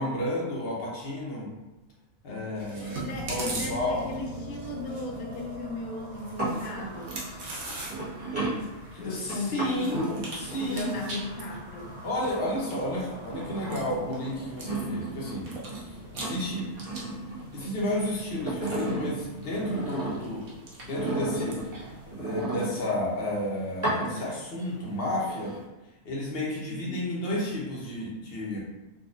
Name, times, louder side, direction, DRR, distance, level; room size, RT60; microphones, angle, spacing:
voice 1, 0.0-1.5 2.2-4.0 8.9-11.2 12.0-15.5 16.1-16.7 17.5-21.8 22.1-25.5 26.0-28.6, left 1 dB, 50° left, -4 dB, 1.0 m, -32 dB
Chewing mastication, 2.6-22.1, right 2 dB, 85° right, 1.3 m, -43 dB
voice 2, 2.8-7.5 9.0-12.0 26.7-27.0, left 2 dB, 85° left, 1 dB, 1.1 m, -37 dB
sound 1, 3.1-16.2, equal, 35° right, 0.5 m, -45 dB
sound 2, 6.2-12.6 12.9-15.9 16.1-17.9 18.3-20.4 20.9-23.1 23.7-24.6 25.0-25.6, right 2 dB, 10° right, 1.2 m, -34 dB
3.8 x 2.5 x 2.5 m, 1.1 s
omnidirectional pair, 1.5 m